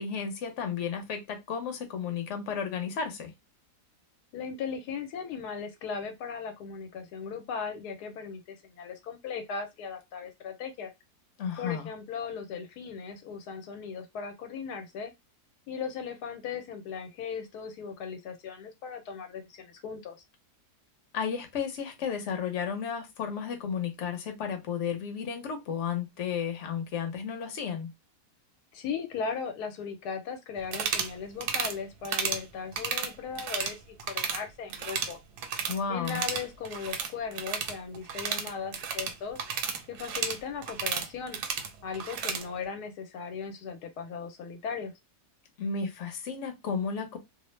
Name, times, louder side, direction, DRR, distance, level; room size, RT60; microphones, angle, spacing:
voice 1, 0.0-3.3 11.4-11.9 21.1-27.9 35.7-36.2 45.6-47.2, left 6 dB, 55° left, 1.0 m, -33 dB
voice 2, 4.3-10.9 11.6-15.1 15.7-20.2 28.7-35.2 35.9-39.4 39.9-41.4 41.8-44.9, left 6 dB, 85° left, 1.2 m, -37 dB
sound 1, 30.6-31.1 31.4-31.7 32.0-32.4 32.7-33.7 34.0-34.4 34.7-35.8 36.0-42.4, right 6 dB, 85° right, 1.2 m, -32 dB
2.7 x 2.0 x 3.1 m
omnidirectional pair, 1.7 m